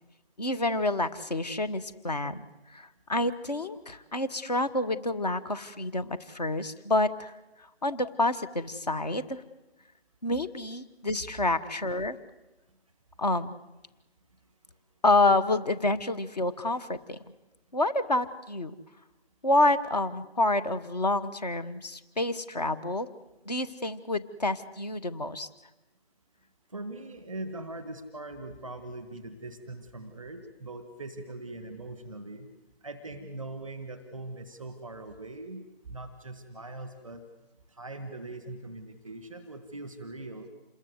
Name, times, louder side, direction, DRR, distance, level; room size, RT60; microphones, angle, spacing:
voice 1, 0.4-2.4 2.7-7.3 7.8-9.4 10.2-12.2 13.2-13.5 15.0-17.2 17.7-18.7 19.4-23.1 23.5-25.5, left 2 dB, 40° left, 11 dB, 1.3 m, -28 dB
voice 2, 26.7-32.5 32.8-37.2 37.7-40.5, right 2 dB, 5° left, 9 dB, 1.0 m, -41 dB
27.0 x 21.0 x 8.0 m, 1.0 s
figure-of-eight pair, 160°, 32 cm